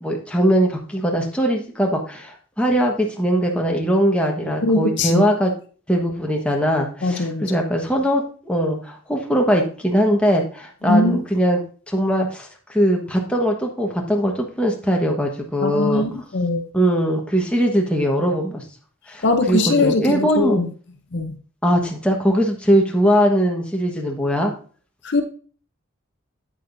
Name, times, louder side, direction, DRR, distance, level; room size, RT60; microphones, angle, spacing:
voice 1, 0.0-5.5 5.9-11.6 11.9-16.1 16.7-18.6 19.1-20.6 21.6-24.5, equal, 5° left, 1.2 m, -20 dB
voice 2, 4.6-5.2 7.0-7.4 10.8-11.2 15.6-16.6 19.2-20.7 21.1-21.3 25.0-25.2, left 2 dB, 55° left, 0.7 m, -20 dB
8.9 x 8.9 x 2.6 m
head